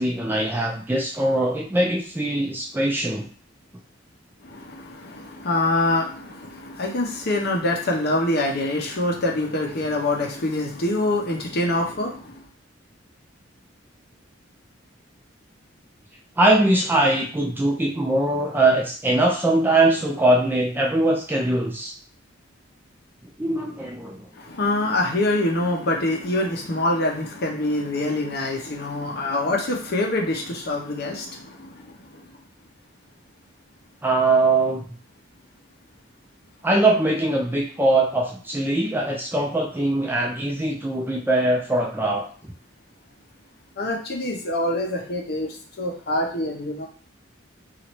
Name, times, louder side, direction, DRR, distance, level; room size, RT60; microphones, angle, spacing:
voice 1, 0.0-3.3 16.4-21.9 23.4-24.3 34.0-34.9 36.6-42.5, right 2 dB, 10° right, 0 dB, 0.3 m, -21 dB
voice 2, 4.4-12.3 24.5-31.7 43.8-46.9, left 2 dB, 50° left, 1 dB, 0.6 m, -25 dB
3.0 x 2.4 x 2.9 m, 0.43 s
head